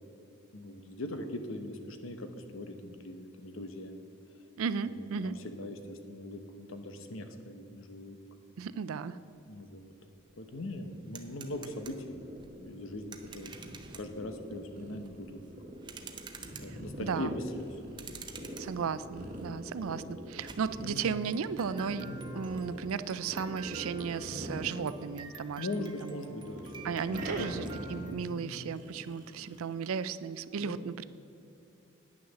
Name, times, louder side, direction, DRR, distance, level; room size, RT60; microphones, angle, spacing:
voice 1, 0.5-4.0 4.9-8.2 9.5-9.9 10.4-12.2 12.6-15.4 16.6-17.7 19.8-20.0 20.8-21.0 21.9-22.2 25.6-28.5 30.6-30.8, left 1 dB, 75° left, 7 dB, 0.9 m, -41 dB
voice 2, 4.6-5.4 8.6-9.2 16.7-17.4 18.6-22.1 22.3-26.1 26.8-31.0, right 6 dB, 90° right, 15 dB, 0.4 m, -35 dB
sound 1, 10.2-28.1, right 5 dB, 20° right, 0.6 m, -50 dB
sound 2, 11.7-25.5 25.8-29.7, equal, 40° right, 1.3 m, -44 dB
9.5 x 6.4 x 6.9 m, 2.7 s
head